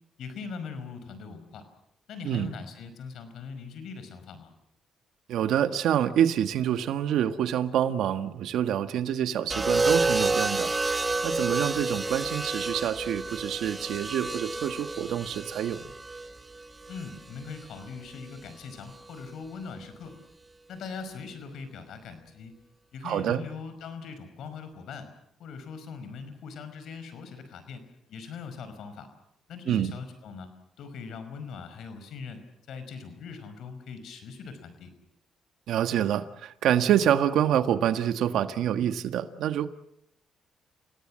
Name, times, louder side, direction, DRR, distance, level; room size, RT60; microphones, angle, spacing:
voice 1, 0.2-1.7 2.1-4.5 16.9-20.2 20.7-22.6 22.9-25.1 25.4-29.1 29.5-30.5 30.8-32.4 32.7-34.9, left 5 dB, 75° left, 10 dB, 5.3 m, -41 dB
voice 2, 5.3-10.7 11.2-15.9 23.0-23.4 29.7-29.9 35.7-39.7, right 10 dB, 80° right, 10 dB, 1.5 m, -26 dB
sound 1, 9.5-17.7 18.9-19.3, right 3 dB, 20° right, 1.1 m, -30 dB
29.5 x 18.0 x 7.6 m, 0.75 s
cardioid pair, 90°, 0 cm